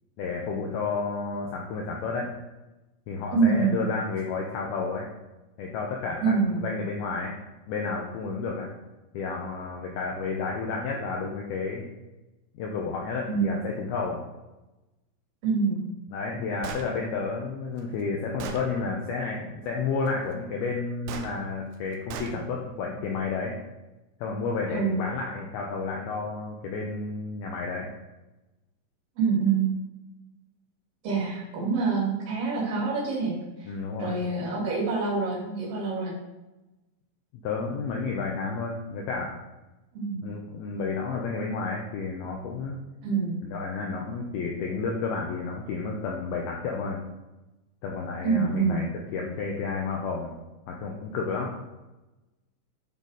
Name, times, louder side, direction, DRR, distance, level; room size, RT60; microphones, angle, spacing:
voice 1, 0.2-2.3 3.1-5.1 5.6-7.4 7.7-8.7 9.1-11.9 12.5-14.2 16.1-23.6 24.2-27.9 33.7-34.2 37.4-39.4 40.2-42.8 43.4-47.0 47.8-50.3 50.7-51.6, left 4 dB, 85° left, 0 dB, 2.2 m, -31 dB
voice 2, 3.3-3.8 6.2-6.6 13.3-13.6 15.4-15.8 24.7-25.0 29.2-29.7 31.0-33.7 34.0-36.1 39.9-40.2 43.0-43.4 48.2-48.9, right 4 dB, 60° right, -5 dB, 4.1 m, -26 dB
Gunshot gunfire, 16.6-16.9 17.8-17.9 18.4-18.6 21.1-21.3 22.1-22.3, right 6 dB, 85° right, 3.2 m, -36 dB
11.0 x 4.3 x 4.9 m, 1.0 s
omnidirectional pair, 5.4 m